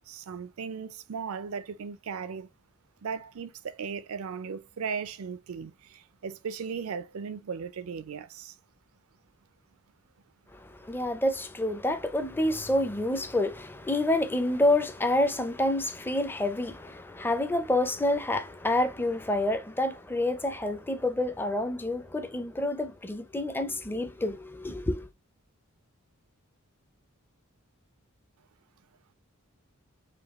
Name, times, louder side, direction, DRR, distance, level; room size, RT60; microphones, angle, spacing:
voice 1, 0.1-2.5 3.0-8.6, right 6 dB, 75° right, 0.4 m, -37 dB
voice 2, 10.6-25.1, left 1 dB, 10° left, 0.4 m, -28 dB
5.1 x 2.3 x 2.9 m
head